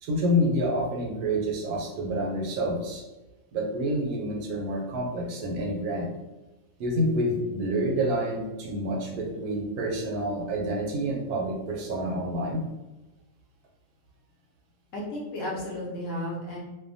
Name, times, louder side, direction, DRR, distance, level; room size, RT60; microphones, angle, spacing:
voice 1, 0.0-3.0 3.5-6.1 6.8-12.7, equal, 75° right, 0 dB, 1.0 m, -28 dB
voice 2, 14.9-16.6, left 1 dB, 65° left, -3 dB, 0.9 m, -33 dB
2.6 x 2.2 x 2.6 m, 1.1 s
omnidirectional pair, 1.7 m